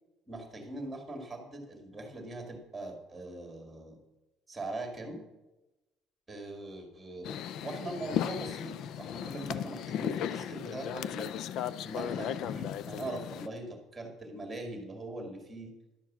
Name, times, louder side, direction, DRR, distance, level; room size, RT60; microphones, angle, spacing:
voice 1, 0.3-4.0 4.5-5.2 6.3-11.3 11.8-15.7, right 2 dB, 5° right, 3 dB, 2.0 m, -41 dB
sound 1, 7.2-13.5, left 9 dB, 45° left, 0.4 m, -36 dB
11.5 x 7.2 x 7.3 m, 1.0 s
cardioid pair, 180°, 0 cm